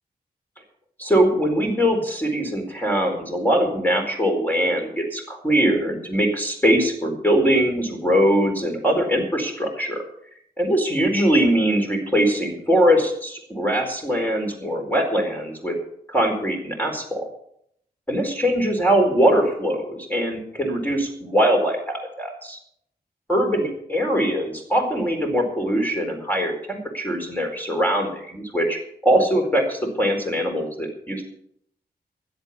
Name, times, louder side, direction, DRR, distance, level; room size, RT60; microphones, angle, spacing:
voice 1, 1.0-10.0 10.6-15.8 16.1-17.2 18.1-22.6 23.3-31.2, equal, 10° left, 2 dB, 4.4 m, -22 dB
16.5 x 11.0 x 5.6 m, 0.71 s
wide cardioid pair, 85°, 17 cm